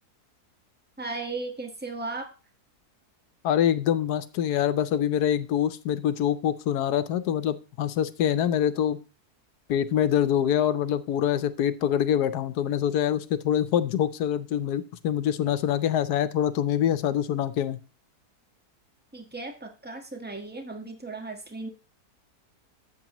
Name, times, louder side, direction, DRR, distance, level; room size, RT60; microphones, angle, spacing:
voice 1, 1.0-2.3 19.1-21.7, right 3 dB, 5° right, 4 dB, 1.3 m, -36 dB
voice 2, 3.4-9.0 9.7-17.8, left 10 dB, 80° left, 12 dB, 1.3 m, -25 dB
12.0 x 8.0 x 3.0 m, 0.33 s
omnidirectional pair, 1.7 m